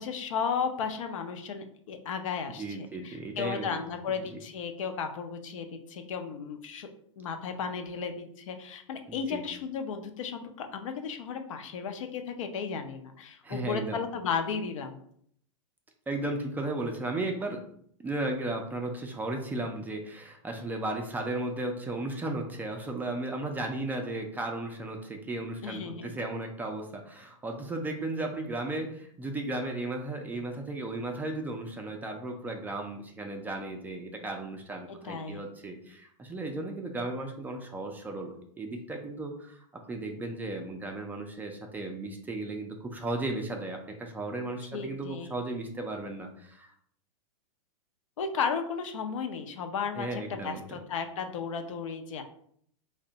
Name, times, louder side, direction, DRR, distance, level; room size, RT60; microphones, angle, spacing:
voice 1, 0.0-6.9 7.2-15.0 25.6-26.1 35.0-35.4 44.7-45.3 48.2-52.2, left 6 dB, 70° left, 6 dB, 0.5 m, -34 dB
voice 2, 2.5-3.8 9.1-9.4 13.4-14.0 16.1-17.6 18.0-46.7 50.0-50.8, right 2 dB, 10° right, 2 dB, 0.3 m, -35 dB
2.6 x 2.1 x 3.8 m, 0.65 s
hypercardioid pair, 115°, 17 cm